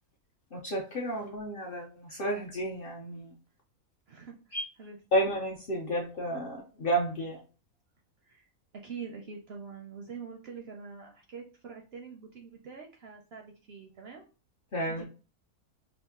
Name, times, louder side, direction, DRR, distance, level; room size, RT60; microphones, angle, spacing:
voice 1, 0.5-3.3 4.5-4.6 5.1-7.4 14.7-15.0, right 1 dB, 60° left, 0.6 m, -31 dB
voice 2, 4.1-5.2 8.2-8.5 8.7-14.3 14.8-15.1, right 5 dB, 65° right, 0.6 m, -45 dB
2.9 x 2.4 x 3.5 m
omnidirectional pair, 1.5 m